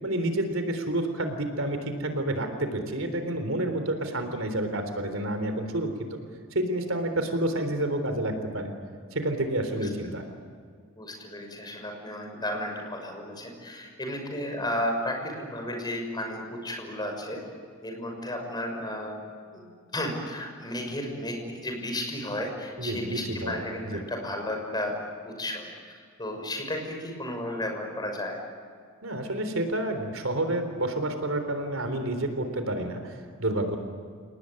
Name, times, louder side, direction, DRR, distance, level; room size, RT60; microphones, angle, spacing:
voice 1, 0.0-6.2 6.5-8.7 9.1-10.2 22.8-23.6 23.8-24.0 29.0-33.8, right 1 dB, 70° right, 7 dB, 3.7 m, -29 dB
voice 2, 9.8-10.1 11.0-17.4 17.8-19.2 19.5-25.0 25.2-25.7 26.2-28.4, left 1 dB, 20° left, 3 dB, 6.2 m, -33 dB
29.0 x 19.0 x 9.7 m, 2.1 s
head